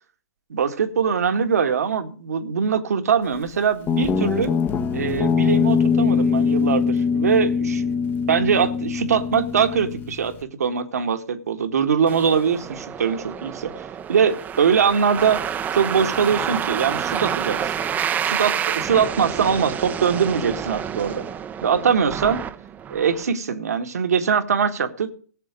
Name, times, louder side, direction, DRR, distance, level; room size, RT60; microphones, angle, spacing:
voice 1, 0.5-4.5 4.9-7.9 8.3-15.4 15.7-17.7 18.3-21.2 21.6-22.4 22.9-25.1, right 7 dB, 65° right, 9 dB, 1.8 m, -22 dB
Guitar, 3.9-10.4, left 6 dB, 20° left, 1.2 m, -22 dB
sound 1, 12.1-23.2, right 8 dB, 20° right, 0.9 m, -28 dB
17.0 x 7.7 x 5.2 m, 0.43 s
figure-of-eight pair, 115°, 9 cm